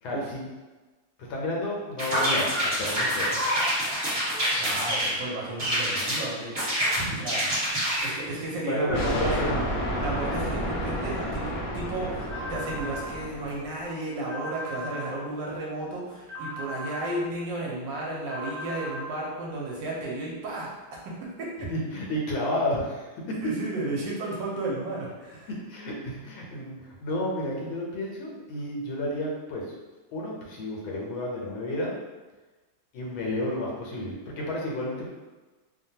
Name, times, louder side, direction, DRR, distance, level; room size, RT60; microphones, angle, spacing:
voice 1, 0.0-0.4 1.2-3.3 6.9-7.1 8.3-9.6 21.6-23.4 25.7-29.7 30.1-32.0 32.9-35.1, left 1 dB, 85° left, -2 dB, 1.5 m, -31 dB
sound 1, 2.0-5.1 5.6-6.2 6.5-8.1, equal, 35° right, 1.3 m, -26 dB
voice 2, 4.6-6.5 7.2-7.5 8.0-9.3 10.0-12.2 12.5-21.5 23.4-25.5, right 2 dB, 70° right, -3 dB, 1.3 m, -33 dB
sound 2, 8.9-13.8, equal, 60° left, 1.0 m, -31 dB
Alarm Clock, 12.3-13.1 14.3-15.1 16.3-17.1 18.3-19.1, left 1 dB, 15° right, 0.6 m, -37 dB
3.2 x 2.2 x 2.7 m, 1.2 s
omnidirectional pair, 2.1 m